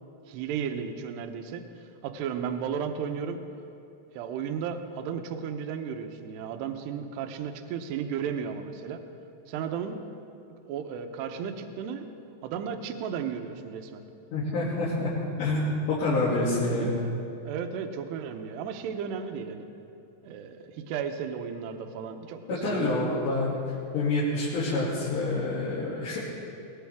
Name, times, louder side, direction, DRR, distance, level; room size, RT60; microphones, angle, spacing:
voice 1, 0.3-1.6 2.0-3.4 4.1-9.0 9.5-10.0 10.7-12.1 12.4-14.0 16.6-17.1 17.4-19.7 20.2-23.0, right 7 dB, 75° right, 6 dB, 2.6 m, -34 dB
voice 2, 14.3-15.1 15.4-17.0 22.5-23.5 23.9-26.2, left 2 dB, 65° left, -9 dB, 4.5 m, -27 dB
20.0 x 19.5 x 3.6 m, 2.7 s
omnidirectional pair, 5.7 m